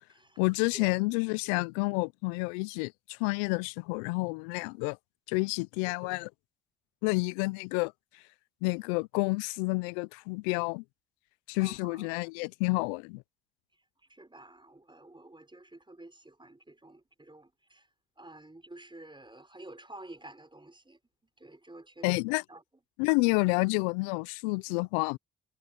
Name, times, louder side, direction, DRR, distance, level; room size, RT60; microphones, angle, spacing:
voice 1, 0.4-5.0 5.3-6.3 7.0-7.9 8.6-10.8 11.5-13.2 22.0-22.4 23.0-25.2, left 28 dB, 80° left, 0.7 m, -29 dB
voice 2, 11.6-12.1 14.1-17.8 18.2-21.0 21.4-22.1 22.5-22.6, right 2 dB, 15° right, 4.8 m, -50 dB
hypercardioid pair, 40°, 33 cm